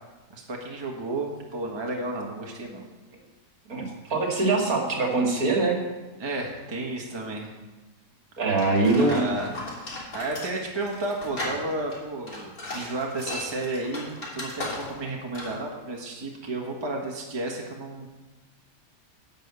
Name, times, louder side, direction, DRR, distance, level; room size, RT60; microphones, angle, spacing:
voice 1, 0.3-2.8 6.2-7.5 9.1-9.5 10.1-18.1, right 2 dB, 15° right, 0 dB, 1.3 m, -32 dB
voice 2, 4.1-5.8 8.4-9.3, right 3 dB, 60° right, 0 dB, 2.4 m, -23 dB
sound 1, 8.6-15.1 15.3-15.6, left 2 dB, 60° left, 3.6 m, -36 dB
11.0 x 5.5 x 8.1 m, 1.2 s
omnidirectional pair, 1.8 m